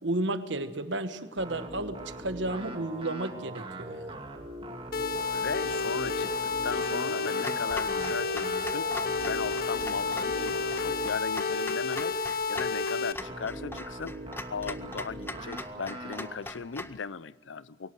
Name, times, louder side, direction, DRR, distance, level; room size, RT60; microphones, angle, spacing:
voice 1, 0.0-4.2, right 2 dB, 75° right, 1.4 m, -32 dB
sound 1, 1.4-11.2 13.2-16.4, right 1 dB, 30° right, 2.2 m, -41 dB
sound 2, 4.9-13.1, left 4 dB, 50° left, 1.0 m, -30 dB
voice 2, 5.3-8.9 9.2-12.2 12.5-14.1 14.5-17.9, left 5 dB, 85° left, 0.6 m, -37 dB
Clock, 7.4-17.0, left 2 dB, 10° left, 0.7 m, -42 dB
23.0 x 18.0 x 7.8 m
head